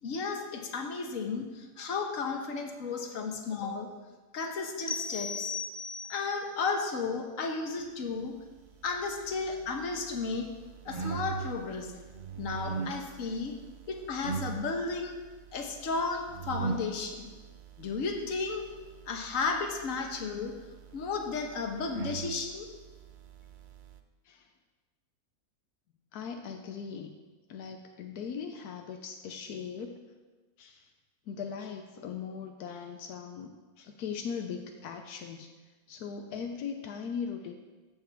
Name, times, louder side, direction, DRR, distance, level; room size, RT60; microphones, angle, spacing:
voice 1, 0.0-3.9 4.3-5.5 6.1-8.3 8.8-10.5 10.8-11.9 12.4-13.5 13.9-15.1 15.5-17.3 17.8-18.6 19.1-20.5 20.9-22.7, left 4 dB, 60° left, 3 dB, 1.5 m, -33 dB
sound 1, 4.9-6.4, left 4 dB, 40° left, 0.4 m, -36 dB
sound 2, 8.6-24.0, right 5 dB, 80° right, 0.4 m, -42 dB
voice 2, 26.1-27.2 27.5-30.0 30.6-30.9 31.3-35.5 35.9-37.5, left 6 dB, 85° left, 4 dB, 1.2 m, -39 dB
14.0 x 7.6 x 3.5 m, 1.3 s
omnidirectional pair, 1.6 m